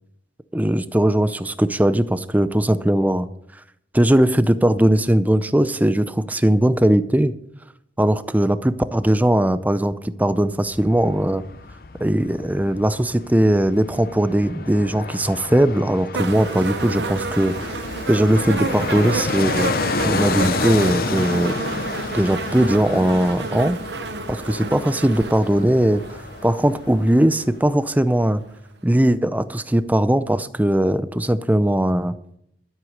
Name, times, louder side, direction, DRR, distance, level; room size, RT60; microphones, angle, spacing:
voice 1, 0.5-3.3 3.9-7.3 8.0-11.4 12.0-17.7 18.1-19.7 20.0-21.5 22.1-23.8 24.3-26.0 26.4-28.4 28.8-32.2, right 1 dB, 10° right, 13 dB, 0.5 m, -19 dB
Fixed-wing aircraft airplane, 10.5-27.5 27.8-27.9, left 4 dB, 55° left, 0.7 m, -30 dB
sound 1, 16.1-27.2 28.2-28.3, right 3 dB, 80° right, 0.9 m, -30 dB
13.0 x 7.9 x 6.5 m, 0.75 s
head